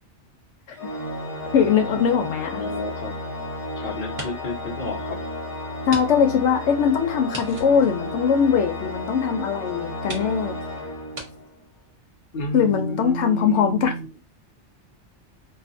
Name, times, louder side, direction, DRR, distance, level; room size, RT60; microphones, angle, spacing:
Organ, 0.8-11.6, left 1 dB, 20° left, 0.7 m, -33 dB
voice 1, 1.5-2.6 5.9-10.6 12.5-13.9, left 7 dB, 80° left, 0.9 m, -21 dB
voice 2, 2.6-3.2 3.8-5.3 12.3-14.1, left 1 dB, 50° left, 0.8 m, -31 dB
sound 1, 2.7-3.6 4.0-4.6 5.0-5.1 5.9-6.1 6.3-6.4 7.3-8.9 9.5-9.6 10.0-10.3 11.1-11.3, right 2 dB, 35° right, 0.7 m, -38 dB
2.5 x 2.4 x 2.5 m
omnidirectional pair, 1.2 m